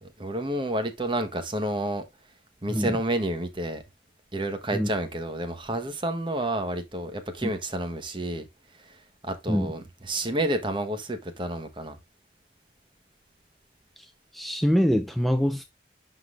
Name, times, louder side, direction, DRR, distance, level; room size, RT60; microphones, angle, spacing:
voice 1, 0.0-2.0 2.6-3.8 4.3-8.4 8.8-8.9 9.2-12.0, right 1 dB, 30° right, 1.1 m, -30 dB
voice 2, 14.0-15.6, equal, ahead, 0.4 m, -25 dB
11.5 x 3.9 x 2.4 m
head